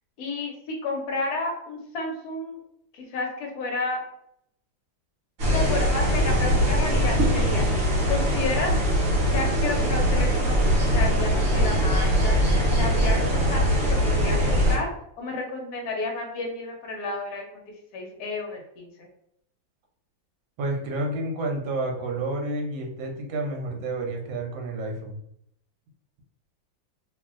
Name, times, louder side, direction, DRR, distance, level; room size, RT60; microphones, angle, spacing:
voice 1, 0.2-2.6 2.9-4.0 5.5-7.6 8.1-8.8 9.2-12.4 12.7-14.9 15.2-19.1, left 3 dB, 65° left, 1 dB, 1.1 m, -31 dB
sound 1, 5.4-14.8, equal, 55° right, 1.1 m, -22 dB
voice 2, 20.6-25.2, right 2 dB, 85° right, 1 dB, 1.4 m, -30 dB
2.9 x 2.6 x 2.4 m, 0.73 s
omnidirectional pair, 2.1 m